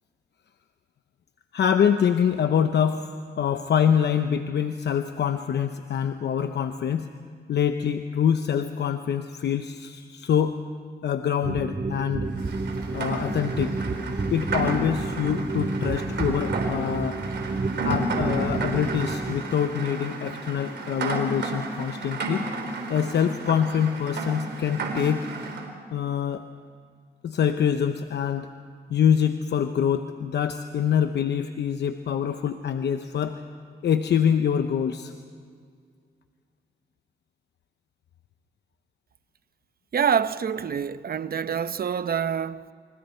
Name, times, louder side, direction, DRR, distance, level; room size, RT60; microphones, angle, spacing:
voice 1, 1.5-3.0 3.4-7.1 7.5-10.6 11.0-12.3 12.9-13.7 14.3-17.2 17.8-22.5 22.9-25.3 25.9-26.4 27.2-28.5 28.9-33.4 33.8-35.1, left 8 dB, 75° left, 0.9 m, -25 dB
sound 1, 11.4-19.4, right 3 dB, 40° right, 2.3 m, -30 dB
Rain, 12.4-25.7, right 3 dB, 75° right, 3.9 m, -32 dB
voice 2, 39.9-42.7, right 7 dB, 60° right, 0.8 m, -26 dB
29.0 x 26.0 x 4.5 m
cardioid pair, 60°, 18 cm